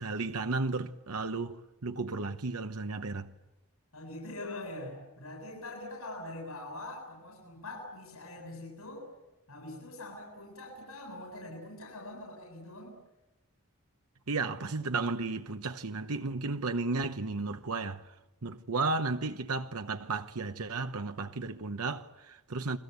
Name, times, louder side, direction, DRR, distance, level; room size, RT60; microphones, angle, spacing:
voice 1, 0.0-3.3 14.3-18.0 18.4-22.8, right 3 dB, 85° right, 1.0 m, -33 dB
voice 2, 3.9-9.0 9.5-12.9, left 2 dB, 85° left, 7.7 m, -43 dB
30.0 x 22.0 x 8.1 m
head